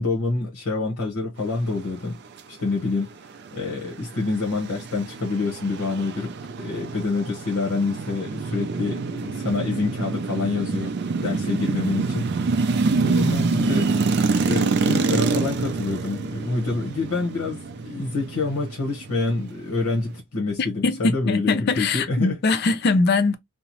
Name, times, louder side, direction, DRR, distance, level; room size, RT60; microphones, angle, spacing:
voice 1, 0.0-2.2 2.5-13.9 14.3-22.4, left 3 dB, 90° left, 0.9 m, -27 dB
sound 1, 3.5-20.2, right 4 dB, 50° right, 0.4 m, -26 dB
voice 2, 20.8-23.3, left 3 dB, 45° left, 0.4 m, -21 dB
2.7 x 2.0 x 2.8 m
head